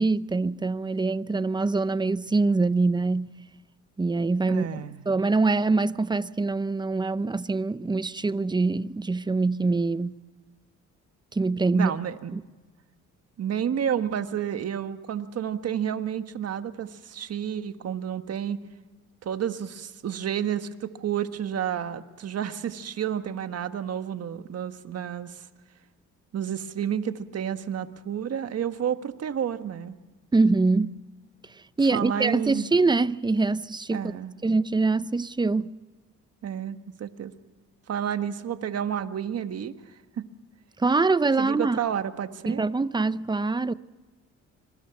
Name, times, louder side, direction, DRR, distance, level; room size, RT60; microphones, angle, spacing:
voice 1, 0.0-3.3 4.0-4.7 5.1-10.2 11.3-11.9 12.3-12.4 30.3-30.9 31.8-34.1 34.4-35.8 40.8-41.8 42.5-43.7, right 3 dB, 15° right, 0.7 m, -24 dB
voice 2, 4.5-5.1 11.7-12.3 13.4-18.6 19.2-25.4 26.3-30.0 31.9-32.7 33.9-34.3 36.4-37.3 37.9-39.7 40.2-40.3 41.4-42.6, right 9 dB, 55° right, 1.5 m, -30 dB
25.5 x 23.5 x 6.0 m
cardioid pair, 90°, 30 cm